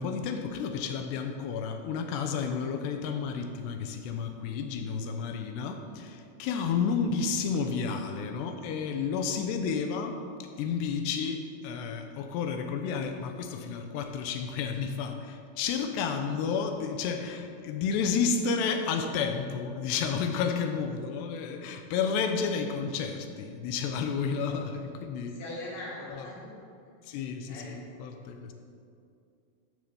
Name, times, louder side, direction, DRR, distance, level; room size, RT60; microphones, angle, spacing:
voice 1, 0.0-25.4 26.1-26.3 27.0-28.5, left 6 dB, 80° left, 5 dB, 2.5 m, -31 dB
voice 2, 25.3-26.5 27.1-27.2 27.5-27.8, left 1 dB, 55° left, -6 dB, 5.2 m, -42 dB
16.0 x 6.7 x 6.9 m, 2.4 s
omnidirectional pair, 5.8 m